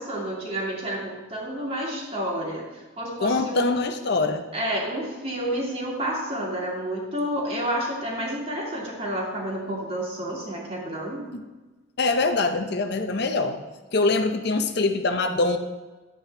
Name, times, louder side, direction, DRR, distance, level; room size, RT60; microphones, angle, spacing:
voice 1, 0.0-3.7 4.5-11.3, right 1 dB, 30° right, -3 dB, 2.0 m, -30 dB
voice 2, 3.2-4.4 11.3-11.4 12.0-13.6 13.9-15.6, left 3 dB, 55° left, 6 dB, 0.6 m, -23 dB
10.5 x 8.1 x 3.3 m, 1.2 s
head